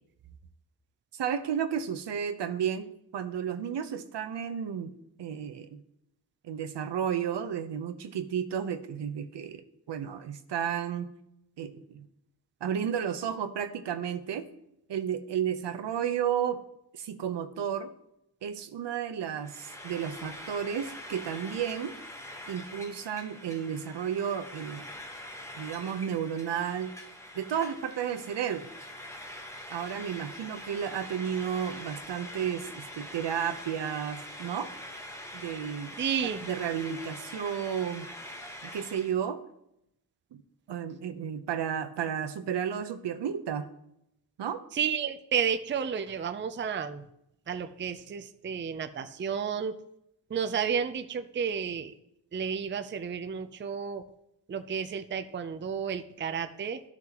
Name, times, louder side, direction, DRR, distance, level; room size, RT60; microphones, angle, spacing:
voice 1, 1.1-4.9 5.2-5.8 6.4-11.1 11.6-12.0 12.6-14.4 14.9-16.6 17.0-17.9 18.4-21.9 22.5-24.8 25.6-26.9 27.3-28.7 29.7-34.7 35.3-36.0 36.4-38.1 38.6-39.4 40.3-40.4 40.7-43.7 44.4-44.6, right 8 dB, 75° right, 10 dB, 0.8 m, -32 dB
Frying (food), 19.4-39.1, left 1 dB, 5° left, 1.1 m, -44 dB
voice 2, 36.0-36.4 44.7-47.1 47.5-49.8 50.3-51.9 52.3-54.0 54.5-56.8, right 7 dB, 25° right, 9 dB, 0.5 m, -32 dB
13.5 x 6.0 x 2.9 m, 0.81 s
wide cardioid pair, 105°, 43 cm